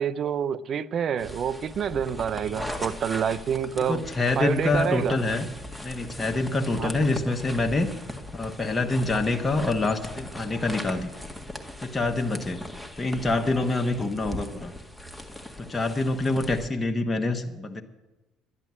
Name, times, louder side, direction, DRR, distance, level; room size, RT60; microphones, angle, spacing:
voice 1, 0.0-4.1 4.4-5.2 6.8-6.9, right 8 dB, 55° right, 0.6 m, -27 dB
sound 1, 1.2-16.7, left 1 dB, ahead, 1.8 m, -39 dB
voice 2, 3.8-5.5 5.8-7.9 8.3-11.1 11.8-12.6 13.0-14.7 15.6-17.8, left 2 dB, 25° left, 1.3 m, -26 dB
11.5 x 10.5 x 7.6 m
hypercardioid pair, 60°, 0 cm